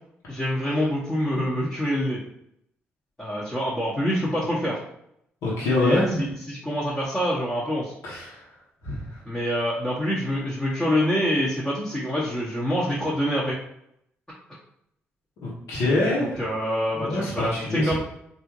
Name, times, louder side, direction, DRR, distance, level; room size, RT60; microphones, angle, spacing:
voice 1, 0.3-2.2 3.2-4.8 5.8-7.9 9.2-13.6 16.4-18.0, equal, 15° left, -8 dB, 1.2 m, -26 dB
voice 2, 5.4-6.2 8.0-8.4 8.8-9.2 15.4-16.4 16.9-18.0, left 2 dB, 75° left, -7 dB, 1.2 m, -25 dB
3.4 x 2.6 x 3.0 m, 0.74 s
supercardioid pair, 55°, 5 cm